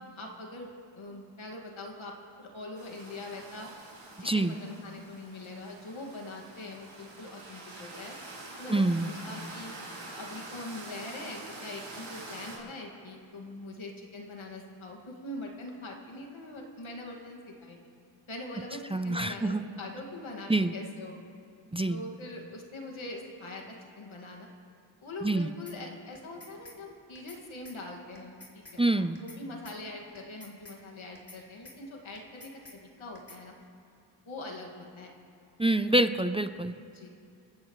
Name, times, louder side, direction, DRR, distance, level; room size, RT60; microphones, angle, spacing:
voice 1, 0.2-3.7 4.2-8.2 8.6-9.8 10.1-17.8 18.3-21.1 21.9-24.5 25.0-33.5 34.3-35.1 36.9-37.1, left 2 dB, 85° left, 0 dB, 2.2 m, -43 dB
sound 1, 2.8-12.6, right 2 dB, 85° right, 4.1 m, -46 dB
voice 2, 8.7-9.1 18.9-19.6 20.5-20.7 21.7-22.0 25.2-25.5 28.8-29.2 35.6-36.7, right 2 dB, 10° right, 10 dB, 0.5 m, -26 dB
sound 2, 25.7-25.8 26.1-26.8 27.1-27.4 27.6-27.8 28.1-28.8 29.1-29.4 29.6-29.8 30.1-30.8 31.1-31.4 31.6-31.8 32.1-32.8 33.1-33.4, left 2 dB, 30° left, 3.6 m, -50 dB
29.5 x 15.0 x 3.2 m, 2.5 s
wide cardioid pair, 65°, 47 cm